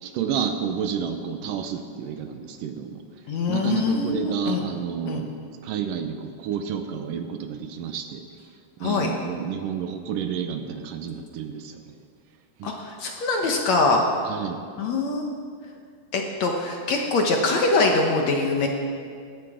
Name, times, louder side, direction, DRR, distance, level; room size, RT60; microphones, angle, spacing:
voice 1, 0.0-3.0 3.5-5.3 5.6-8.2 8.8-11.9 12.6-12.7 14.2-14.6, right 7 dB, 75° right, 7 dB, 2.3 m, -30 dB
voice 2, 3.3-4.6 5.1-5.3 8.8-9.1 12.6-14.0 14.8-15.2 16.1-18.7, left 3 dB, 60° left, 1 dB, 2.1 m, -23 dB
19.0 x 15.0 x 5.0 m, 2.2 s
omnidirectional pair, 4.2 m